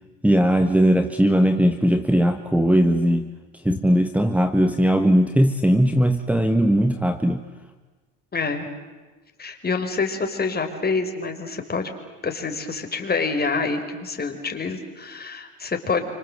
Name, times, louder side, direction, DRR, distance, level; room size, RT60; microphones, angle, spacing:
voice 1, 0.2-3.3 3.6-7.4, equal, 5° right, 9 dB, 1.5 m, -19 dB
voice 2, 8.3-8.7 9.4-11.9 12.2-16.0, left 4 dB, 25° left, 5 dB, 4.8 m, -26 dB
28.5 x 25.5 x 7.9 m, 1.3 s
supercardioid pair, 95°, 35 cm